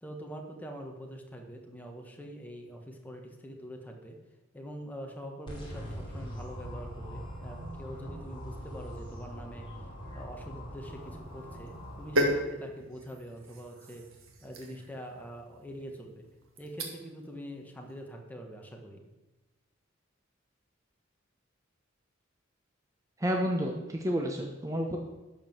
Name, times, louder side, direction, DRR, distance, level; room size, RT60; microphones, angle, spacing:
voice 1, 0.0-4.2 4.5-9.7 10.1-14.0 14.4-16.2 16.6-19.0, equal, 10° left, 1 dB, 1.5 m, -44 dB
sound 1, 5.5-12.3, equal, 25° left, 3.3 m, -42 dB
sound 2, 10.8-17.3 17.6-17.9, equal, 80° right, 1.8 m, -36 dB
voice 2, 23.2-25.0, equal, 15° right, 1 dB, 0.8 m, -30 dB
11.5 x 5.0 x 7.6 m, 1.1 s
head